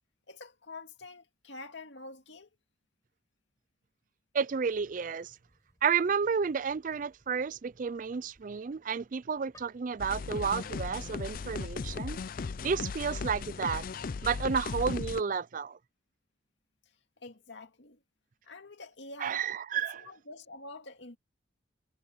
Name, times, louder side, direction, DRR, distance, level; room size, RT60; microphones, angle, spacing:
voice 1, 0.3-2.5 17.2-18.0 18.4-19.4 19.7-21.2, left 3 dB, 70° left, 2.4 m, -47 dB
voice 2, 4.3-5.3 5.8-12.2 12.6-13.9 14.2-15.8 19.2-20.0, right 6 dB, 45° right, 0.4 m, -31 dB
sound 1, 4.5-11.3, left 1 dB, 15° left, 6.6 m, -67 dB
sound 2, 10.0-15.2, left 4 dB, 45° left, 0.4 m, -37 dB
head